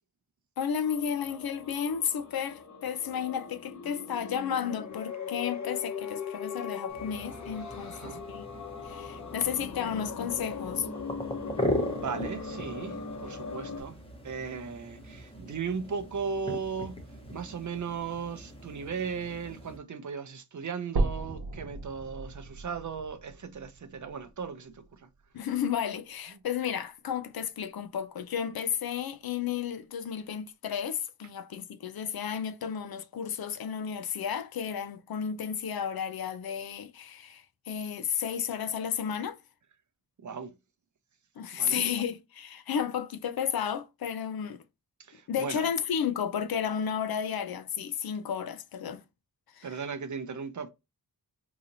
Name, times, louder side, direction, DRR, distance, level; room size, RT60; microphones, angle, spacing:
voice 1, 0.6-8.5 8.8-10.9 25.3-39.4 41.4-44.6 45.3-49.0 49.5-49.7, left 8 dB, 65° left, 0.5 m, -32 dB
sound 1, 0.8-13.8, left 5 dB, 45° left, 1.0 m, -40 dB
sound 2, 6.9-19.8, left 1 dB, 15° left, 0.9 m, -39 dB
voice 2, 7.9-8.2 11.9-14.0 14.2-17.0 17.3-25.0 40.2-40.5 41.5-41.9 45.0-45.7 49.6-50.7, right 6 dB, 50° right, 0.6 m, -37 dB
sound 3, 21.0-25.0 25.5-25.6 26.2-26.3 26.6-26.7 27.5-27.6, right 3 dB, 75° right, 0.9 m, -35 dB
4.0 x 2.8 x 2.6 m
wide cardioid pair, 85°, 39 cm